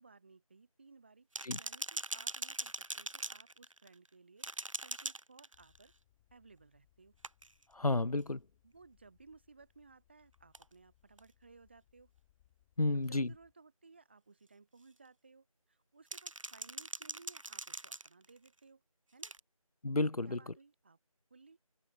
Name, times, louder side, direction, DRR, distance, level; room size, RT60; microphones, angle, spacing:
voice 1, 0.0-5.9 6.3-7.1 8.6-12.1 12.9-18.8 19.1-19.4 20.2-21.0 21.3-21.6, right 4 dB, 20° right, 6.7 m, -60 dB
sound 1, 1.4-4.1 4.4-5.9 7.2-7.6 10.5-10.6 11.2-11.3 13.0-13.1 16.1-18.5 19.2-19.4, right 2 dB, 60° right, 1.0 m, -42 dB
sound 2, 5.5-13.5, left 15 dB, 5° left, 5.4 m, -72 dB
voice 2, 7.7-8.4 12.8-13.3 19.8-20.5, left 2 dB, 80° left, 1.1 m, -32 dB
figure-of-eight pair, 175°, 19 cm